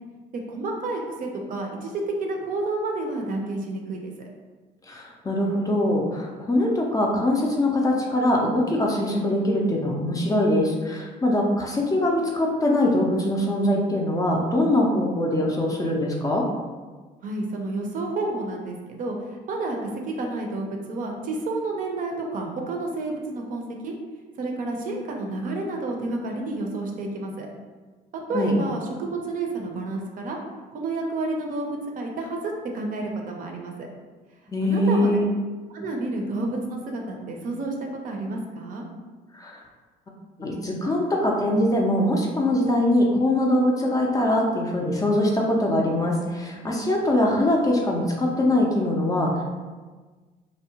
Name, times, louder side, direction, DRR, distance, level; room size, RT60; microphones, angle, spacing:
voice 1, 0.3-4.1 17.2-19.2 19.5-23.9 24.4-27.5 28.3-30.4 30.7-33.9 34.6-35.2 35.7-38.8, right 2 dB, 50° right, 1 dB, 0.5 m, -30 dB
voice 2, 4.9-16.4 28.3-28.6 34.5-35.3 39.3-39.6 40.4-49.4, left 1 dB, 20° left, -1 dB, 0.4 m, -22 dB
2.7 x 2.0 x 2.7 m, 1.3 s
cardioid pair, 110°, 17 cm